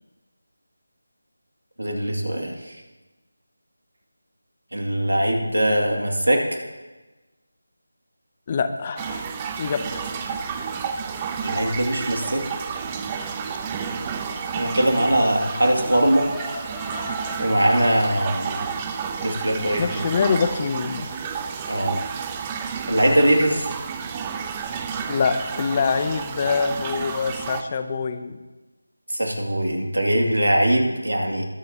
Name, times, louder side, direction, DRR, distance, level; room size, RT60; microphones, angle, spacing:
voice 1, 1.8-2.5 4.7-6.4 11.4-12.4 14.5-16.3 17.4-18.6 19.2-19.8 21.7-22.0 22.9-23.7 29.1-31.5, right 1 dB, 90° right, 1 dB, 2.5 m, -21 dB
voice 2, 8.5-9.2 9.6-10.3 19.7-21.3 25.1-28.4, left 5 dB, 25° left, 9 dB, 0.7 m, -25 dB
sound 1, 9.0-27.6, right 6 dB, 15° right, 0.5 m, -31 dB
sound 2, 15.9-18.0, left 1 dB, 5° left, 1.2 m, -37 dB
21.0 x 7.5 x 3.0 m, 1.2 s
figure-of-eight pair, 165°, 0 cm